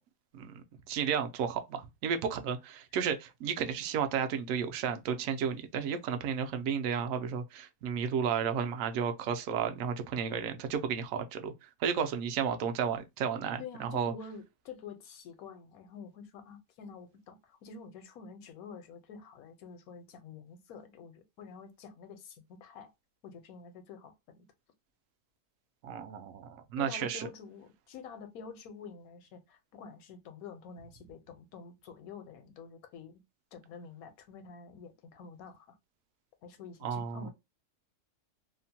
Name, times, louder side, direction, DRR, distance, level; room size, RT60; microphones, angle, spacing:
voice 1, 0.3-11.5 11.8-14.1 25.8-27.3 36.8-37.3, right 7 dB, 70° right, 0.9 m, -33 dB
voice 2, 13.6-22.9 23.2-24.5 26.8-33.2 33.5-35.8 36.4-37.3, left 5 dB, 70° left, 1.1 m, -48 dB
2.8 x 2.1 x 2.7 m
omnidirectional pair, 1.6 m